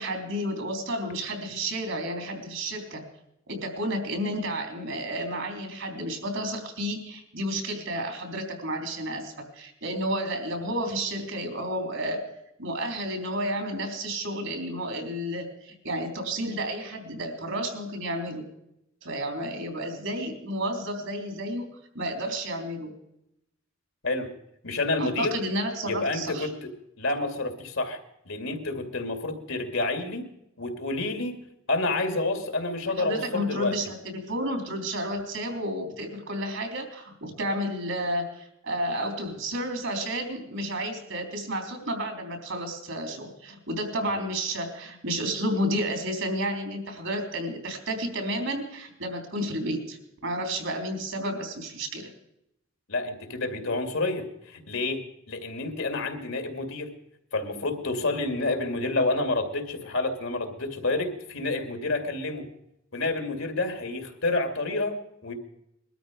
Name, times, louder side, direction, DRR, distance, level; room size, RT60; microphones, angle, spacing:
voice 1, 0.0-3.0 3.5-12.2 12.6-18.5 19.0-21.7 21.9-22.9 25.0-26.5 33.0-50.0 50.2-52.1, equal, 75° right, 4 dB, 3.7 m, -31 dB
voice 2, 24.6-25.4 25.9-28.0 28.2-30.2 30.6-31.3 31.7-33.7 52.9-56.9 57.3-62.5 62.9-65.3, left 2 dB, 75° left, 5 dB, 2.5 m, -29 dB
21.5 x 13.0 x 5.1 m, 0.81 s
head